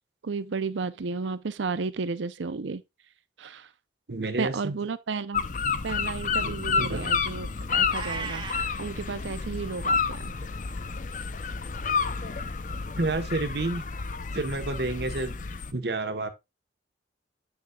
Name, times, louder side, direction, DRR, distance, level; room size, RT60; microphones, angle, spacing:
voice 1, 0.2-2.8 3.4-3.7 4.2-5.5 5.8-10.3, right 4 dB, 75° right, 0.6 m, -33 dB
voice 2, 4.1-4.8 6.4-7.0 13.0-13.8 14.3-15.3 15.7-16.3, right 2 dB, 60° right, 1.1 m, -30 dB
sound 1, 5.3-15.7, left 5 dB, 40° left, 0.5 m, -30 dB
Meow, 7.9-8.7, right 4 dB, 25° right, 1.2 m, -35 dB
8.1 x 6.9 x 2.3 m
head